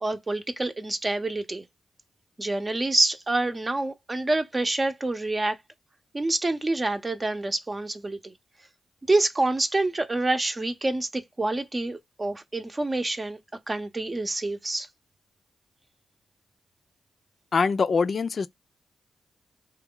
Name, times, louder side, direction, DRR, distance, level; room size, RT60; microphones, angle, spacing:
voice 1, 0.0-1.6 2.4-5.6 6.1-8.3 9.1-13.4 13.7-14.9, right 2 dB, 30° right, 0.7 m, -27 dB
voice 2, 17.5-18.5, left 5 dB, 55° left, 0.4 m, -23 dB
3.1 x 2.3 x 3.7 m
supercardioid pair, 40°, 0 cm